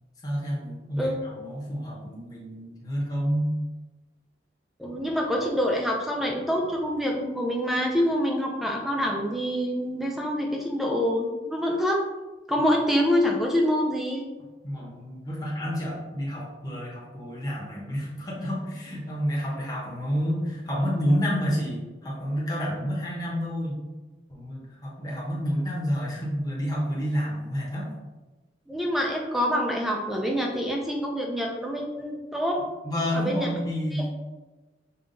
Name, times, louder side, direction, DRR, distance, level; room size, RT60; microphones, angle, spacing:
voice 1, 0.2-3.6 12.6-12.7 14.6-23.8 24.3-27.9 32.8-34.0, equal, 20° left, -5 dB, 1.1 m, -29 dB
voice 2, 4.8-12.0 12.5-14.2 28.7-32.6 33.1-33.5 33.9-34.1, equal, ahead, 0 dB, 0.5 m, -26 dB
5.6 x 2.4 x 3.8 m, 1.2 s
head